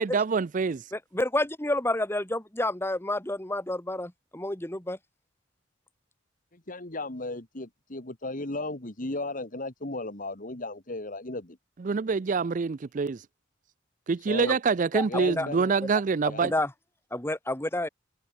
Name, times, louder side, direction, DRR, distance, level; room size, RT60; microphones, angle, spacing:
voice 1, 0.0-0.8 11.8-13.2 14.1-16.5, right 5 dB, 45° right, 0.4 m, -26 dB
voice 2, 1.1-5.0 14.9-15.1 15.4-15.5 16.4-16.7 17.1-17.9, left 1 dB, 15° left, 1.7 m, -29 dB
voice 3, 6.5-11.6 14.3-14.6 15.1-15.7 16.3-16.5, left 2 dB, 45° left, 2.0 m, -35 dB
open air
head